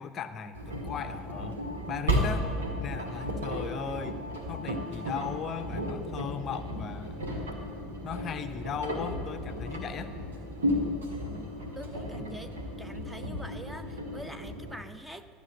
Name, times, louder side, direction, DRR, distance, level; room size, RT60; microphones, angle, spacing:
voice 1, 0.0-2.5 2.8-4.2 4.5-7.3 8.0-10.1, left 7 dB, 35° left, 10 dB, 0.5 m, -37 dB
Engine, 0.5-14.7, equal, 70° right, 1.8 m, -34 dB
sound 1, 1.0-6.0, left 1 dB, 90° left, 0.3 m, -46 dB
voice 2, 11.7-15.3, right 1 dB, 5° right, 8 dB, 0.7 m, -45 dB
12.5 x 6.8 x 8.3 m, 2.3 s
figure-of-eight pair, 70°, 0 cm